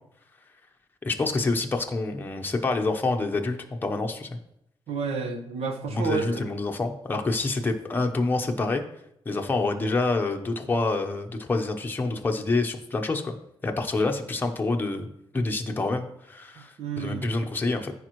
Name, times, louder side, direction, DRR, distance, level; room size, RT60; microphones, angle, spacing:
voice 1, 1.0-4.3 5.9-8.8 9.3-13.3 13.6-15.1 15.3-17.9, left 3 dB, 20° left, 3 dB, 0.9 m, -27 dB
voice 2, 4.9-6.5 16.6-17.3, right 5 dB, 90° right, 4 dB, 1.2 m, -31 dB
14.5 x 5.0 x 3.1 m, 0.77 s
wide cardioid pair, 145°, 10 cm